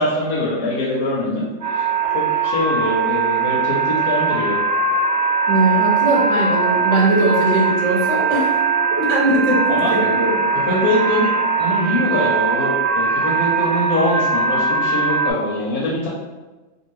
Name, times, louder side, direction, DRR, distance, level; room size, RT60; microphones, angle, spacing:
voice 1, 0.0-1.9 2.1-4.6 9.7-9.9 10.7-16.1, left 1 dB, 60° left, -4 dB, 0.7 m, -23 dB
sound 1, 1.6-15.3, right 5 dB, 20° right, 0.5 m, -20 dB
voice 2, 5.5-8.6 8.9-9.6 9.9-10.4, right 2 dB, 70° right, -3 dB, 1.0 m, -19 dB
2.6 x 2.5 x 3.0 m, 1.2 s
omnidirectional pair, 1.3 m